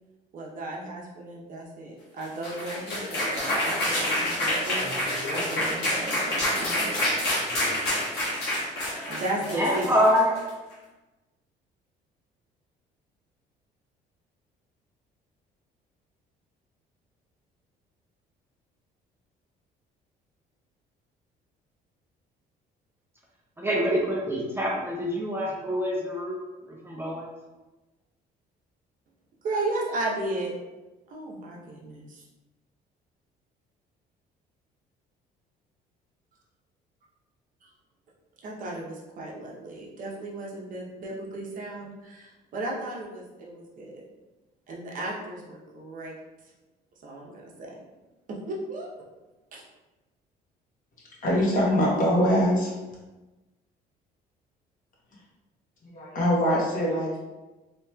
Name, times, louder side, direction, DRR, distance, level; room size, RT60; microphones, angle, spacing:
voice 1, 0.3-7.0 9.1-9.9 29.4-30.5 31.1-32.2 37.6-37.7 38.4-44.0 44.7-46.2 47.0-47.7 48.3-49.0 49.5-49.6, right 2 dB, 50° right, -3 dB, 0.7 m, -35 dB
sound 1, 2.2-10.5, left 1 dB, 80° left, 1.2 m, -28 dB
voice 2, 9.4-10.3 23.6-27.3, equal, 15° right, -4 dB, 0.5 m, -26 dB
voice 3, 51.2-52.7 55.9-57.2, equal, 50° left, -4 dB, 1.1 m, -23 dB
2.9 x 2.9 x 2.2 m, 1.1 s
cardioid pair, 110°, 17 cm